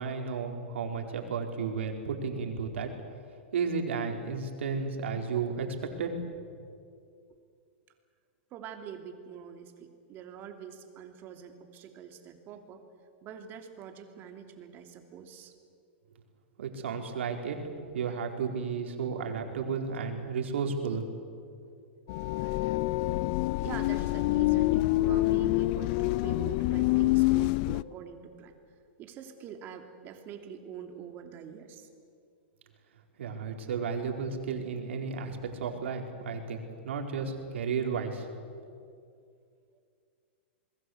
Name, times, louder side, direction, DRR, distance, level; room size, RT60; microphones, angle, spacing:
voice 1, 0.0-2.9 3.5-6.2 16.6-17.6 17.9-21.0 33.2-38.6, right 5 dB, 80° right, 3 dB, 4.3 m, -33 dB
voice 2, 8.5-12.8 13.2-15.5 23.6-28.5 29.0-31.9 33.4-33.5, right 8 dB, 30° right, 5 dB, 3.0 m, -45 dB
sound 1, 22.1-27.8, left 18 dB, 45° left, 0.5 m, -26 dB
28.0 x 21.5 x 8.0 m, 2.3 s
hypercardioid pair, 140°, 6 cm